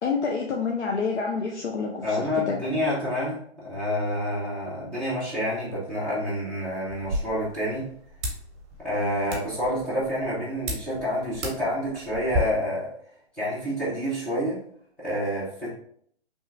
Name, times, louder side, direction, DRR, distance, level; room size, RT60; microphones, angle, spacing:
voice 1, 0.0-2.6, left 5 dB, 85° left, -1 dB, 0.6 m, -28 dB
voice 2, 2.0-7.9 8.8-12.9 13.3-14.6 15.0-15.7, equal, 5° left, -9 dB, 0.3 m, -28 dB
sound 1, 6.9-12.4, equal, 25° right, 0.9 m, -35 dB
3.0 x 2.2 x 3.3 m, 0.63 s
hypercardioid pair, 135°, 33 cm